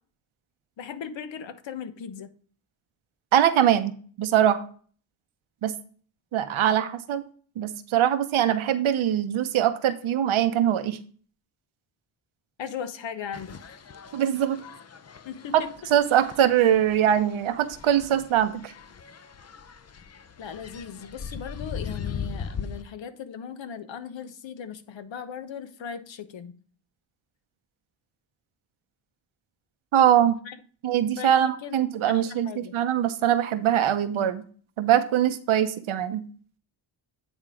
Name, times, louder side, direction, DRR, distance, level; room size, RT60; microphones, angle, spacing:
voice 1, 0.8-2.3 12.6-13.6 15.2-15.7 20.4-26.6 30.4-30.6 31.2-32.8, left 7 dB, 70° left, 1.1 m, -38 dB
voice 2, 3.3-3.9 4.2-4.6 5.6-5.7 6.3-7.2 7.6-11.0 14.1-14.6 15.5-15.6 15.9-18.7 29.9-30.4 30.8-34.4 34.8-36.2, right 10 dB, 80° right, 1.0 m, -22 dB
sound 1, 13.3-22.8, left 6 dB, 35° left, 0.7 m, -40 dB
9.3 x 3.6 x 5.0 m
cardioid pair, 70°, 47 cm